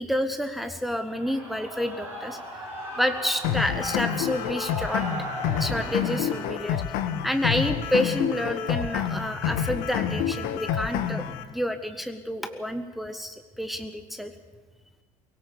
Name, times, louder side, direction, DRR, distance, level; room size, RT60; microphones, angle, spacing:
voice 1, 0.0-2.4 3.0-5.2 5.6-6.8 7.2-14.3, left 1 dB, ahead, 7 dB, 1.5 m, -29 dB
Shout / Cheering, 1.1-6.5, right 1 dB, 75° right, 5.6 m, -37 dB
sound 1, 3.4-11.4, left 9 dB, 55° left, 1.7 m, -28 dB
23.5 x 18.0 x 7.0 m, 1.2 s
figure-of-eight pair, 65°, 18 cm